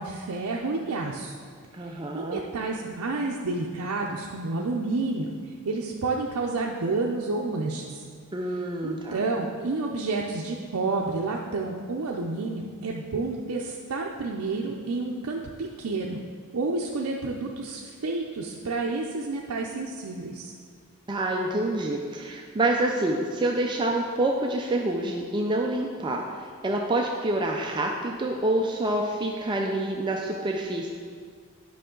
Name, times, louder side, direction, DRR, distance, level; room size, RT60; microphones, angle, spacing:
voice 1, 0.0-1.3 1.8-8.0 8.8-16.2 16.5-20.5, right 3 dB, 75° right, -1 dB, 0.5 m, -30 dB
voice 2, 1.7-2.4 8.3-9.2 21.1-30.9, right 1 dB, 20° right, 0 dB, 0.4 m, -27 dB
9.2 x 5.4 x 3.8 m, 2.1 s
head